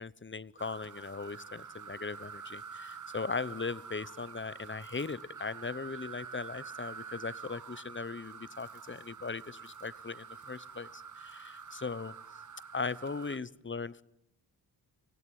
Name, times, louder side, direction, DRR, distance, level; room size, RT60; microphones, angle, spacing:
voice 1, 0.0-12.1 12.7-14.0, left 4 dB, 25° left, 18 dB, 1.0 m, -39 dB
sound 1, 0.6-13.4, right 6 dB, 45° right, 1.2 m, -47 dB
26.0 x 17.5 x 9.8 m, 0.83 s
cardioid pair, 60°, 43 cm